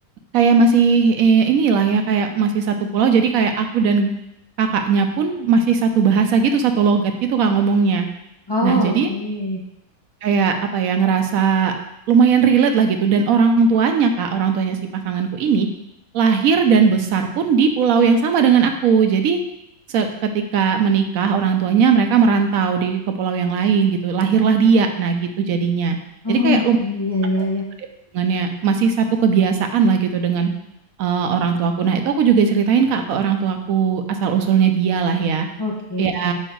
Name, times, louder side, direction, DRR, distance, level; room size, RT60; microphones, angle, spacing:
voice 1, 0.3-4.1 4.6-8.1 8.6-9.1 10.2-11.7 12.1-15.7 16.1-19.4 19.9-26.0 26.3-26.8 28.1-30.5 31.0-35.5 36.0-36.3, right 6 dB, 75° right, 6 dB, 1.1 m, -18 dB
voice 2, 8.5-9.6 26.2-27.6 35.6-36.1, left 2 dB, 25° left, -3 dB, 0.7 m, -22 dB
4.9 x 4.5 x 4.5 m, 0.84 s
omnidirectional pair, 1.5 m